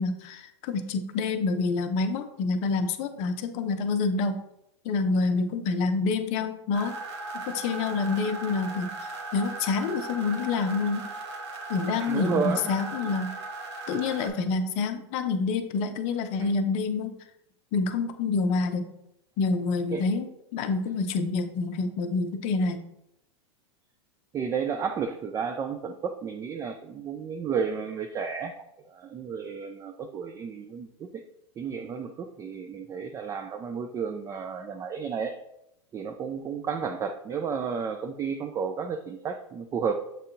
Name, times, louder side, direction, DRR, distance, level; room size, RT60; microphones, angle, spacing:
voice 1, 0.0-4.4 4.8-7.0 7.3-11.1 11.7-13.3 13.9-17.2 17.7-18.9 19.4-22.9, left 4 dB, 45° left, 9 dB, 0.6 m, -27 dB
sound 1, 6.7-14.3, right 3 dB, 70° right, 1.1 m, -38 dB
voice 2, 12.0-12.7 19.9-20.0 24.3-28.5 28.9-31.2 31.6-35.4 35.9-39.9, right 6 dB, 20° right, 6 dB, 0.3 m, -32 dB
7.4 x 2.7 x 2.6 m, 0.82 s
hypercardioid pair, 110°, 15 cm